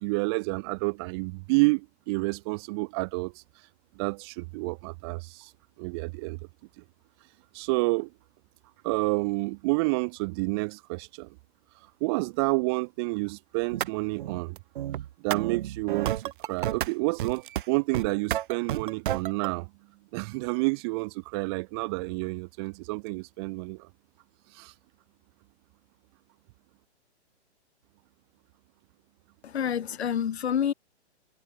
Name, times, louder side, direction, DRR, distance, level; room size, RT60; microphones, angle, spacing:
voice 1, 0.0-3.4 4.0-5.5 5.8-6.4 7.5-8.1 8.8-11.3 12.0-14.6 15.2-19.7 20.1-23.9 24.5-24.7, right 28 dB, 25° right, 0.9 m, -29 dB
sound 1, 13.7-13.9 14.2-16.9 17.2-17.6 17.9-19.5, right 12 dB, 50° right, 0.4 m, -31 dB
voice 2, 29.4-30.7, left 8 dB, 70° left, 2.6 m, -28 dB
hypercardioid pair, 155°, 33 cm